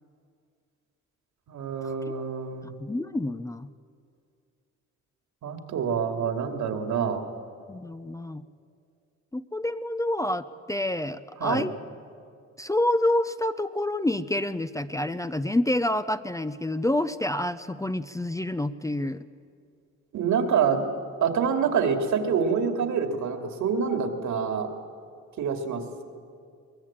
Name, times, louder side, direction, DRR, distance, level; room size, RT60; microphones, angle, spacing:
voice 1, 1.5-2.7 5.4-7.3 11.4-11.6 20.1-24.7 25.4-25.8, right 6 dB, 75° right, 5 dB, 2.6 m, -26 dB
voice 2, 2.6-3.7 7.7-8.5 9.3-11.8 12.6-19.2, left 1 dB, 10° left, 12 dB, 0.6 m, -28 dB
22.5 x 19.5 x 8.7 m, 2.3 s
cardioid pair, 90°, 30 cm